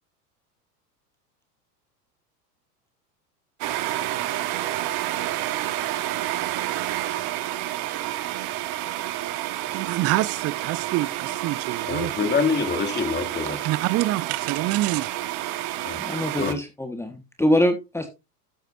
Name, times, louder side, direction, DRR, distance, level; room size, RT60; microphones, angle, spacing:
sound 1, 3.6-16.5, right 14 dB, 50° right, 1.8 m, -29 dB
voice 1, 9.7-12.1 12.9-13.0 13.6-15.1, right 17 dB, 30° right, 0.6 m, -26 dB
voice 2, 11.9-13.6 15.8-16.0 16.4-16.5, left 5 dB, 20° left, 2.5 m, -25 dB
voice 3, 16.0-18.1, left 1 dB, 5° left, 1.5 m, -24 dB
13.0 x 9.0 x 2.7 m
hypercardioid pair, 95°, 48 cm